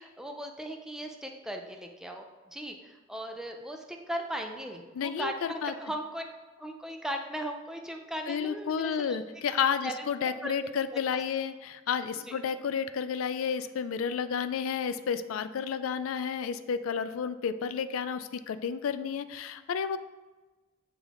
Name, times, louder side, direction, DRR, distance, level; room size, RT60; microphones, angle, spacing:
voice 1, 0.0-6.2 6.6-9.2 9.8-10.1 10.4-10.5 10.9-11.2 12.2-12.4, right 1 dB, 5° right, 3 dB, 0.5 m, -38 dB
voice 2, 4.9-5.3 5.6-5.7 8.3-20.0, left 7 dB, 85° left, 13 dB, 0.4 m, -31 dB
8.2 x 3.4 x 3.7 m, 1.2 s
head